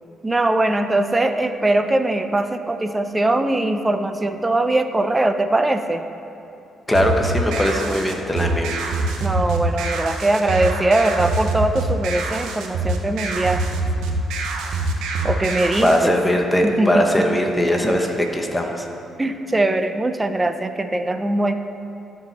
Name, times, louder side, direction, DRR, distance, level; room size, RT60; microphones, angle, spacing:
voice 1, 0.2-6.0 9.2-13.6 15.2-16.1 16.6-17.3 17.8-18.0 19.2-21.5, right 2 dB, 15° right, 8 dB, 0.5 m, -21 dB
voice 2, 6.9-8.8 15.8-18.9, equal, 10° left, 2 dB, 1.0 m, -20 dB
sound 1, 6.9-16.0, right 2 dB, 90° right, 0.7 m, -25 dB
13.5 x 4.6 x 4.1 m, 2.8 s
cardioid pair, 90°, 0 cm